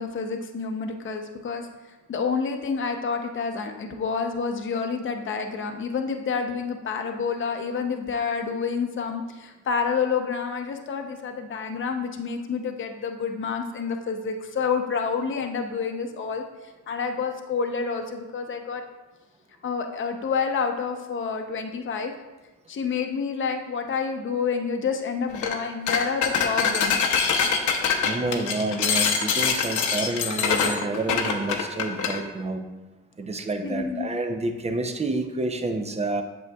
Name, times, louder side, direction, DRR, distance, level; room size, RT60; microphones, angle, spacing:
voice 1, 0.0-1.7 2.1-16.4 16.9-18.8 19.6-22.1 22.7-26.9 33.6-34.1, left 5 dB, 40° left, 4 dB, 0.8 m, -28 dB
sound 1, 25.3-25.6 25.9-32.2, left 6 dB, 75° left, 0.8 m, -24 dB
voice 2, 27.7-32.6 33.2-36.2, right 2 dB, 20° right, 6 dB, 0.6 m, -29 dB
8.2 x 6.2 x 2.3 m, 1.1 s
cardioid pair, 90°, 30 cm